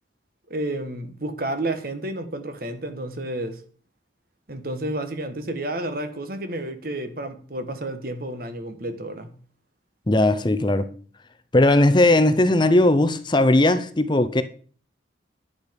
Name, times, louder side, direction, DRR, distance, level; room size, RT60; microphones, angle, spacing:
voice 1, 0.5-3.6 4.5-9.3, right 1 dB, 50° right, 1.4 m, -31 dB
voice 2, 10.1-10.9 11.5-14.4, left 1 dB, 25° left, 0.7 m, -18 dB
11.0 x 8.3 x 5.2 m
head